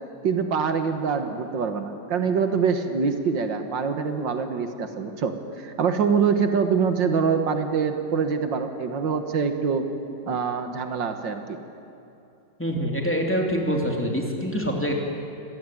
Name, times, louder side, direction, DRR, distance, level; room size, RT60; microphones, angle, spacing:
voice 1, 0.2-9.9 10.3-11.6, right 6 dB, 80° right, 7 dB, 2.2 m, -25 dB
voice 2, 12.6-14.9, equal, 5° left, 0 dB, 3.0 m, -25 dB
26.0 x 17.5 x 9.3 m, 2.7 s
omnidirectional pair, 2.0 m